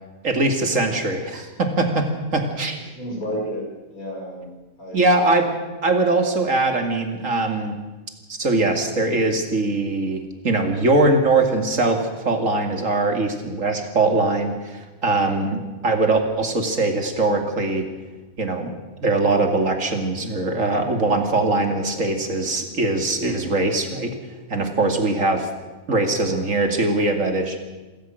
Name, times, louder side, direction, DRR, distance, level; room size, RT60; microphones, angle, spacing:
voice 1, 0.2-2.0 2.3-2.8 4.9-5.5 5.8-7.8 8.3-17.8 18.4-18.7 19.0-24.1 24.5-25.5 25.9-27.6, right 2 dB, 65° right, 5 dB, 2.8 m, -21 dB
voice 2, 2.9-4.5 4.8-5.3, equal, 90° left, -2 dB, 7.6 m, -31 dB
26.5 x 14.0 x 7.8 m, 1.2 s
omnidirectional pair, 1.5 m